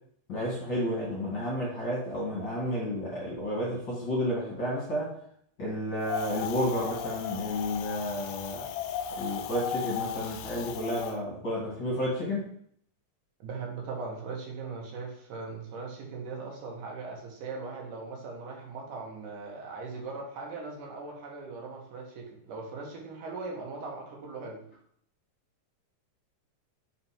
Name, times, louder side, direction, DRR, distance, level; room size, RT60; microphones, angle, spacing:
voice 1, 0.3-5.1 5.6-8.7 9.2-12.5, equal, 40° left, -6 dB, 2.4 m, -31 dB
Wind, 6.0-11.1, left 8 dB, 80° left, 2.1 m, -36 dB
voice 2, 13.4-24.6, right 4 dB, 75° right, -1 dB, 2.8 m, -39 dB
6.0 x 4.3 x 4.2 m, 0.65 s
omnidirectional pair, 3.8 m